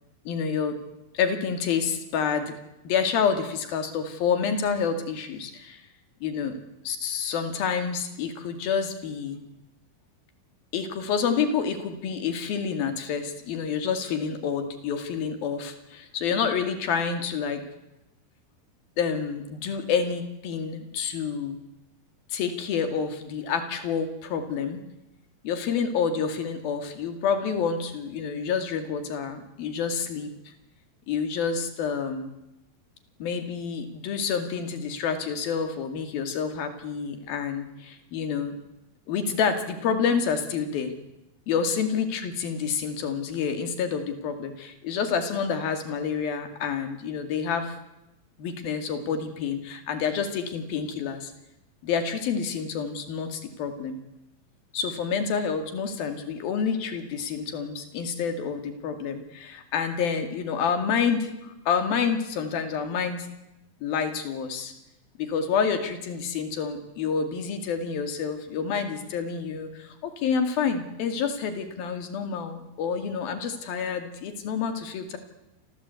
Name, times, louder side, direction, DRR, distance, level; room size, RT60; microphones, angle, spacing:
voice 1, 0.3-0.8 1.1-2.5 2.8-5.8 6.2-6.6 6.9-9.4 10.7-17.6 19.0-21.6 22.3-24.8 25.4-30.3 31.1-32.3 33.2-38.5 39.1-40.9 41.5-47.8 48.4-51.3 51.8-54.0 54.7-63.3 63.8-64.7 65.2-75.2, left 6 dB, 75° left, 7 dB, 4.1 m, -28 dB
29.0 x 24.5 x 8.4 m, 0.93 s
omnidirectional pair, 4.3 m